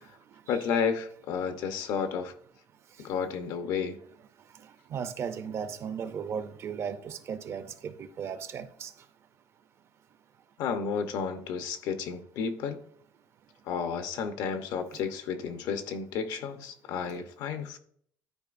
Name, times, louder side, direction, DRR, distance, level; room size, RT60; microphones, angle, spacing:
voice 1, 0.5-2.3 3.0-4.0 10.6-12.8 13.7-17.8, left 6 dB, 75° left, 0.9 m, -32 dB
voice 2, 4.9-8.9, right 7 dB, 40° right, 0.6 m, -36 dB
11.5 x 4.6 x 2.5 m
cardioid pair, 155°, 7 cm